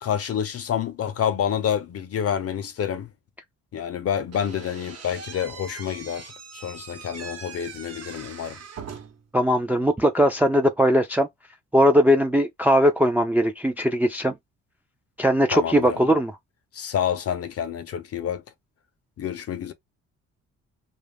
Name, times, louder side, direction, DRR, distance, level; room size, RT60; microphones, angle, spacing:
voice 1, 0.0-3.1 3.7-8.6 15.5-16.0 16.7-18.4 19.2-19.7, left 9 dB, 50° left, 0.6 m, -28 dB
Slam / Squeak, 4.3-9.3, right 6 dB, 55° right, 1.0 m, -41 dB
voice 2, 9.3-11.3 11.7-14.3 15.2-16.4, equal, 5° right, 0.4 m, -20 dB
2.4 x 2.0 x 3.3 m
cardioid pair, 90°, 30 cm